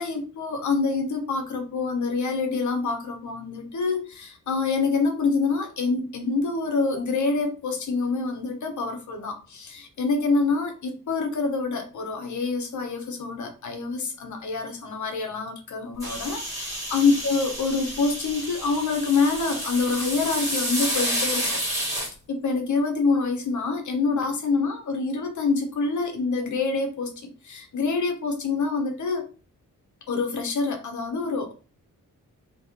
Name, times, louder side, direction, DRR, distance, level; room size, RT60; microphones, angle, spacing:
voice 1, 0.0-29.3 30.1-31.5, left 4 dB, 60° left, 1.1 m, -26 dB
sound 1, 16.0-22.1, right 1 dB, 10° right, 2.1 m, -30 dB
3.5 x 3.0 x 4.3 m
wide cardioid pair, 160°, 33 cm